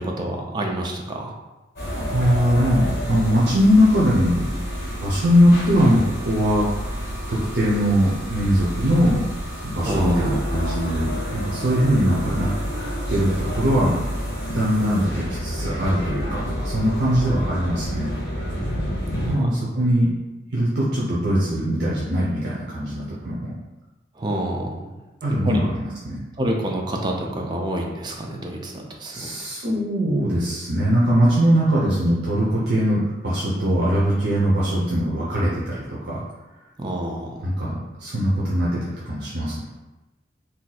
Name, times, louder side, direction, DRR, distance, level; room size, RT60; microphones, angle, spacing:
voice 1, 0.0-1.3 9.8-10.4 19.3-19.5 24.2-24.9 25.3-25.6 26.4-29.3 36.8-37.5, right 1 dB, 25° right, 0 dB, 0.4 m, -28 dB
sound 1, 1.8-19.3, equal, 50° left, 1.3 m, -29 dB
voice 2, 1.9-4.4 5.0-6.7 7.3-9.2 9.6-12.5 13.1-13.9 14.5-18.1 19.3-20.1 20.5-23.5 25.2-26.2 29.1-36.2 37.4-39.6, equal, 65° right, -7 dB, 0.6 m, -21 dB
2.6 x 2.3 x 4.0 m, 1.1 s
head